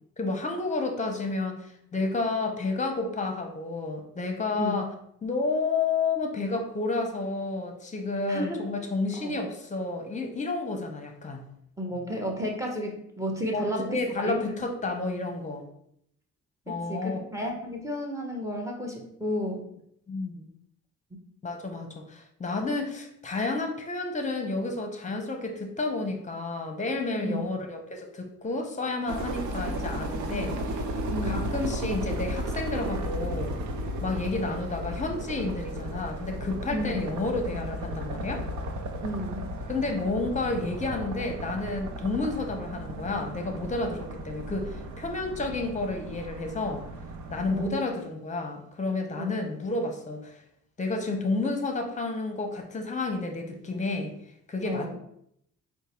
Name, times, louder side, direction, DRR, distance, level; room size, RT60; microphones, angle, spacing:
voice 1, 0.2-4.9 5.2-11.4 13.5-15.6 16.7-17.2 20.1-20.5 21.4-30.8 31.3-33.6 34.0-38.4 39.7-46.8 47.3-50.4 50.8-54.1 54.5-55.0, left 3 dB, 25° left, 4 dB, 0.9 m, -31 dB
voice 2, 8.3-8.7 9.2-9.3 11.8-14.6 16.7-19.7 27.2-27.5 31.1-31.5 36.7-37.0 39.0-39.5 47.5-47.9 49.2-49.3 54.6-55.0, equal, 10° right, 0 dB, 1.1 m, -32 dB
sound 1, 29.1-47.7, right 1 dB, 70° right, 0.7 m, -34 dB
4.5 x 2.3 x 4.4 m, 0.73 s
cardioid pair, 90°, 30 cm